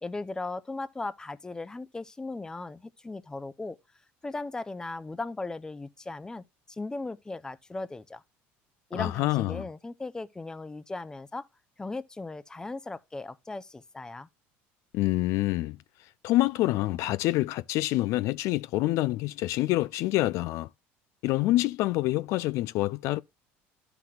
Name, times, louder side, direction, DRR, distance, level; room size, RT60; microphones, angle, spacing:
voice 1, 0.0-3.8 4.2-8.2 8.9-11.5 11.8-14.3, left 3 dB, 10° left, 0.5 m, -37 dB
voice 2, 8.9-9.7 14.9-20.7 21.2-23.2, left 17 dB, 65° left, 0.3 m, -27 dB
11.5 x 5.9 x 2.3 m
supercardioid pair, 100°, 6 cm